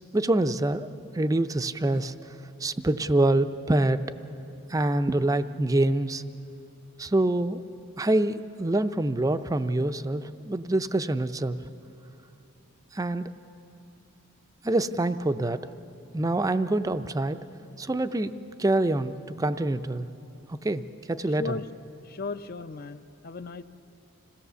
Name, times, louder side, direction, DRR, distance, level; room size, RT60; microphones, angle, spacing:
voice 1, 0.1-0.9 1.1-4.0 4.7-6.2 7.0-7.6 8.0-11.6 12.9-13.3 14.6-15.6 16.1-17.5 17.8-20.1 20.5-21.6, right 2 dB, 15° right, 11 dB, 0.4 m, -26 dB
voice 2, 21.3-21.6 22.0-23.6, left 4 dB, 45° left, 12 dB, 0.5 m, -36 dB
26.5 x 17.0 x 6.9 m, 2.9 s
head